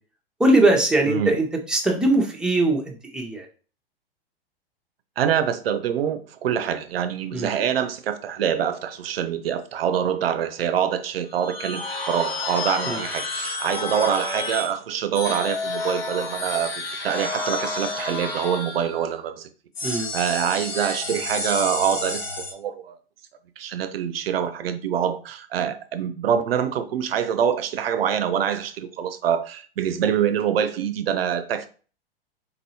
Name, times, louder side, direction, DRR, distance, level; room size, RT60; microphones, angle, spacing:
voice 1, 0.4-3.5 7.3-7.5 12.9-13.0 19.8-20.1, right 2 dB, 5° right, 0.7 m, -21 dB
voice 2, 5.2-19.5 19.8-23.0 23.6-31.7, right 8 dB, 70° right, 0.5 m, -25 dB
sound 1, 11.3-14.7 15.1-19.1 19.7-22.5, left 2 dB, 75° left, 1.5 m, -30 dB
4.1 x 2.6 x 2.8 m
hypercardioid pair, 105°, 30 cm